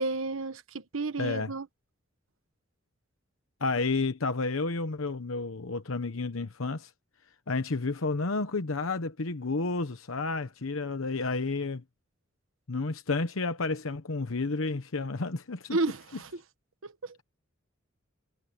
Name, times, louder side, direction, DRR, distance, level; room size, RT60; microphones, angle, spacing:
voice 1, 0.0-1.7 15.7-16.3 16.8-17.1, right 3 dB, 80° right, 1.2 m, -32 dB
voice 2, 1.2-1.5 3.6-6.9 7.5-11.8 12.7-15.8, left 3 dB, 90° left, 1.0 m, -31 dB
head